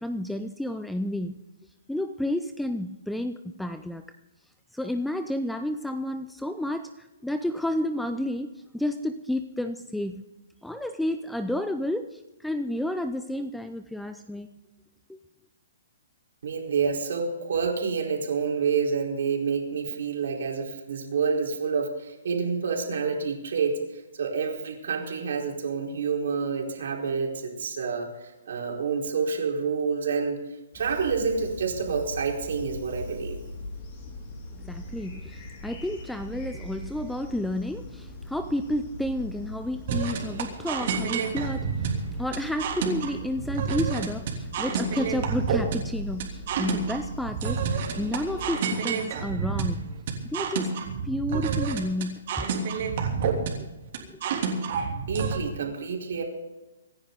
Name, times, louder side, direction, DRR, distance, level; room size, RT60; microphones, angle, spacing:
voice 1, 0.0-1.4 1.9-4.0 4.7-10.2 10.6-14.5 15.1-15.2 34.5-49.8 50.2-50.7 51.0-52.5 53.6-53.7 54.1-54.2, left 1 dB, ahead, 9 dB, 0.5 m, -31 dB
voice 2, 16.4-30.4 30.7-33.4 55.1-56.2, right 5 dB, 70° right, 0 dB, 4.5 m, -28 dB
sound 1, 30.7-48.5, left 1 dB, 35° left, 5.0 m, -41 dB
sound 2, 39.9-55.4, right 5 dB, 45° right, 3.1 m, -29 dB
26.0 x 10.0 x 4.0 m, 1.1 s
hypercardioid pair, 160°, 0 cm